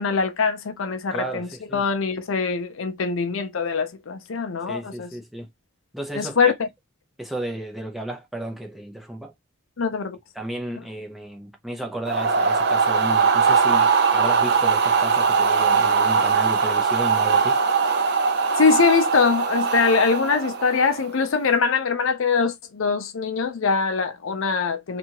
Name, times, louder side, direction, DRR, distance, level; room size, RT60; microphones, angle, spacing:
voice 1, 0.0-5.1 6.1-6.7 9.8-10.2 18.6-25.0, left 5 dB, 70° left, 0.5 m, -23 dB
voice 2, 1.1-1.8 4.7-5.5 5.9-6.5 7.2-9.3 10.4-17.6, right 1 dB, ahead, 0.5 m, -33 dB
sound 1, 12.0-21.1, right 5 dB, 50° right, 0.5 m, -20 dB
2.8 x 2.4 x 2.8 m
head